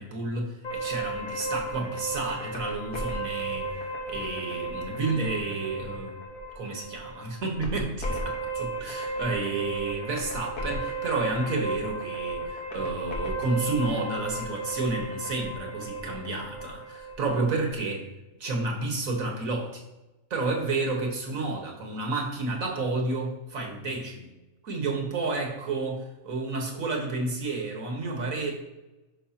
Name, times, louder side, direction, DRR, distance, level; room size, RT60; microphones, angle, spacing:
voice 1, 0.0-3.7 4.1-6.2 6.6-18.1 18.4-19.8 20.3-24.3 24.6-28.5, right 3 dB, 75° right, 1 dB, 1.9 m, -31 dB
sound 1, 0.6-17.7, right 2 dB, 85° left, 1.9 m, -34 dB
11.0 x 5.4 x 2.9 m, 1.0 s
omnidirectional pair, 1.4 m